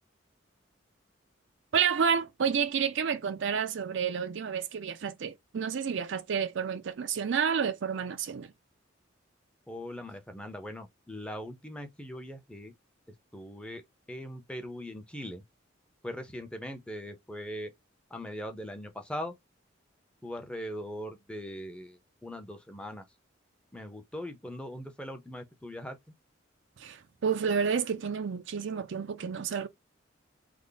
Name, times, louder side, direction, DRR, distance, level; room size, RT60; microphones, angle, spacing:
voice 1, 1.7-8.5 26.8-29.7, right 6 dB, 65° right, 0.4 m, -30 dB
voice 2, 9.7-12.7 13.3-13.8 14.1-15.4 16.0-17.7 18.1-19.3 20.2-23.1 23.7-26.0, equal, 5° left, 0.7 m, -40 dB
3.4 x 2.1 x 3.9 m
head